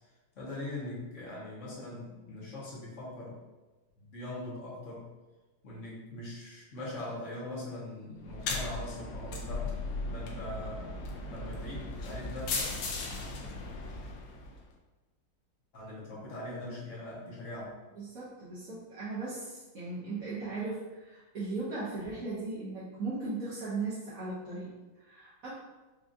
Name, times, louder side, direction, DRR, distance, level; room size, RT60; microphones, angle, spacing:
voice 1, 0.3-3.4 4.0-5.1 5.6-9.7 10.1-11.0 11.3-12.7 15.7-17.8, left 1 dB, 50° left, -6 dB, 0.9 m, -41 dB
sound 1, 8.2-14.6, left 3 dB, 85° left, 1.4 m, -37 dB
voice 2, 18.0-25.5, right 3 dB, 65° right, -9 dB, 0.9 m, -37 dB
4.8 x 2.3 x 2.6 m, 1.2 s
omnidirectional pair, 2.3 m